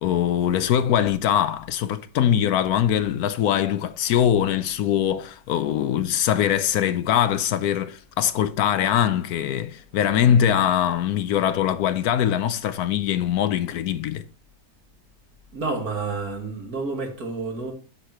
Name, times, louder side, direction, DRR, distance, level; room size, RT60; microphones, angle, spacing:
voice 1, 0.0-14.2, left 10 dB, 70° left, 1.0 m, -22 dB
voice 2, 15.5-17.7, right 3 dB, 65° right, 2.5 m, -29 dB
8.3 x 6.4 x 3.0 m
omnidirectional pair, 1.7 m